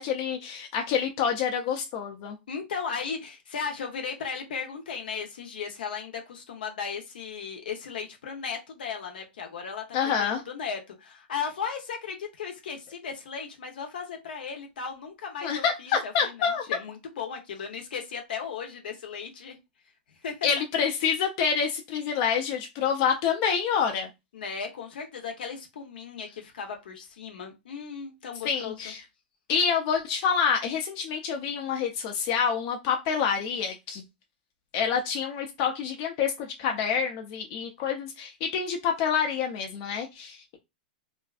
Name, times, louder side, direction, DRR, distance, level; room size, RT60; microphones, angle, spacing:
voice 1, 0.0-2.4 9.9-10.4 15.4-16.6 20.4-24.1 28.4-29.0 29.5-34.0 34.7-40.6, left 7 dB, 50° left, 0.5 m, -27 dB
voice 2, 2.5-19.6 20.2-20.5 24.3-28.9, left 6 dB, 80° left, 0.8 m, -36 dB
2.5 x 2.2 x 2.4 m
hypercardioid pair, 120°, 5 cm